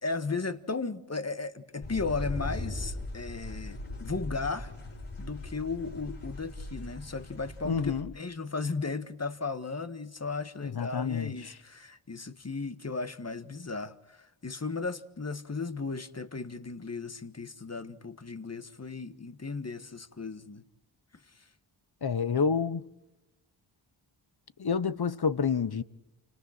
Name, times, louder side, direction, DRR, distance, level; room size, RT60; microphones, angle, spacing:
voice 1, 0.0-4.7 5.2-20.6 21.3-21.4, left 4 dB, 30° left, 1.7 m, -35 dB
sound 1, 1.8-8.0, left 2 dB, 75° left, 6.5 m, -39 dB
voice 2, 7.6-8.1 10.6-11.6 22.0-22.9 24.6-25.8, left 6 dB, 50° left, 1.2 m, -29 dB
29.5 x 26.0 x 4.4 m
cardioid pair, 45°, 49 cm